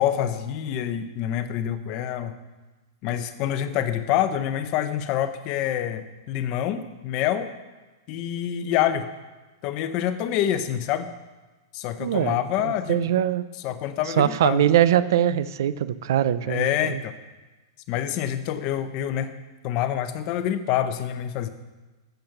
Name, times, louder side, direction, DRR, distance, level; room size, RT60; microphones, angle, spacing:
voice 1, 0.0-2.4 3.0-7.5 8.1-9.1 9.6-11.1 11.7-13.0 13.6-14.6 16.5-17.1 17.9-19.3 19.6-21.5, left 10 dB, 30° left, 10 dB, 0.7 m, -26 dB
voice 2, 12.0-13.4 14.2-17.0, right 10 dB, 55° right, 15 dB, 0.6 m, -22 dB
13.0 x 7.9 x 5.9 m, 1.2 s
supercardioid pair, 175°, 2 cm